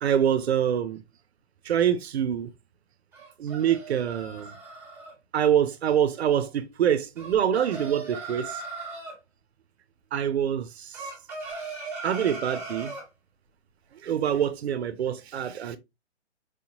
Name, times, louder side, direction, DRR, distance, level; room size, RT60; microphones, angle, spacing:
voice 1, 0.0-1.0 1.6-2.5 3.4-4.5 5.3-8.6 10.1-11.0 12.0-12.9 14.0-15.8, right 9 dB, 60° right, 0.7 m, -25 dB
sound 1, 3.1-5.1 7.2-9.2 10.9-13.1, right 4 dB, 5° right, 1.2 m, -38 dB
4.9 x 2.8 x 2.6 m
hypercardioid pair, 140°, 37 cm